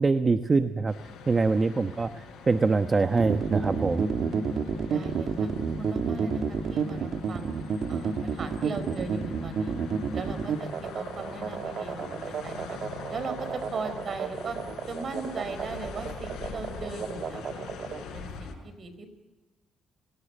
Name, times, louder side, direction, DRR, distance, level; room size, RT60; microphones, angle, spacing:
voice 1, 0.0-4.1, right 4 dB, 30° right, 9 dB, 1.0 m, -24 dB
sound 1, 0.9-18.5, left 5 dB, 85° left, 5.7 m, -44 dB
sound 2, 3.2-18.0, right 6 dB, 65° right, 2.4 m, -30 dB
voice 2, 4.9-5.5 5.8-7.5 7.9-9.7 10.1-12.8 13.1-14.6 14.9-19.1, right 4 dB, 45° right, 11 dB, 4.7 m, -38 dB
29.0 x 18.5 x 8.8 m, 1.0 s
cardioid pair, 90°, 0 cm